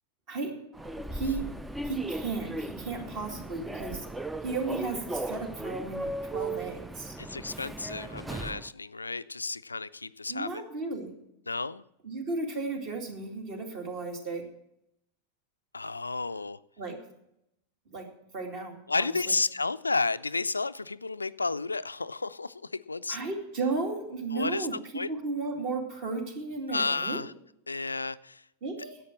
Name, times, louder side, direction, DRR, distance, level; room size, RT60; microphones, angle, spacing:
Human voice / Subway metro underground, 0.7-8.7, right 2 dB, 5° right, 0.4 m, -37 dB
voice 1, 1.1-1.4 1.8-4.1 4.4-7.2 10.3-11.1 12.0-14.4 16.8-17.0 17.9-18.1 18.3-18.8 19.3-19.4 23.1-24.8 25.1-27.2 28.6-29.0, right 3 dB, 45° right, 3 dB, 2.5 m, -34 dB
voice 2, 7.2-10.6 11.5-11.8 15.7-16.6 18.9-23.2 24.3-24.7 24.9-25.1 26.7-27.3 27.7-28.4, left 3 dB, 80° left, 14 dB, 0.3 m, -32 dB
10.5 x 8.4 x 7.4 m, 0.81 s
figure-of-eight pair, 90°, 0 cm